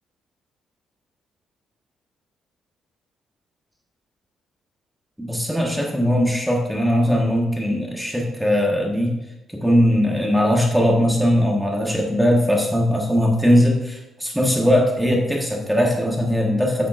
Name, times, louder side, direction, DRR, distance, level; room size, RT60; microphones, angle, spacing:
voice 1, 5.2-9.2 9.5-16.9, equal, 5° right, -1 dB, 1.5 m, -20 dB
9.2 x 8.4 x 2.6 m, 0.97 s
cardioid pair, 90°, 0 cm